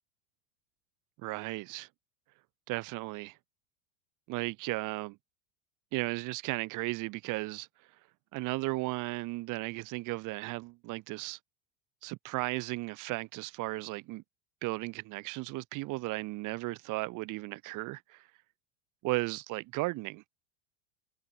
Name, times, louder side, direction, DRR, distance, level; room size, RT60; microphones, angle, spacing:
voice 1, 1.2-1.9 2.7-3.3 4.3-5.2 5.9-7.7 8.3-11.4 12.0-14.2 14.6-18.2 19.0-20.2, right 22 dB, 45° right, 1.1 m, -35 dB
supercardioid pair, 110°, 41 cm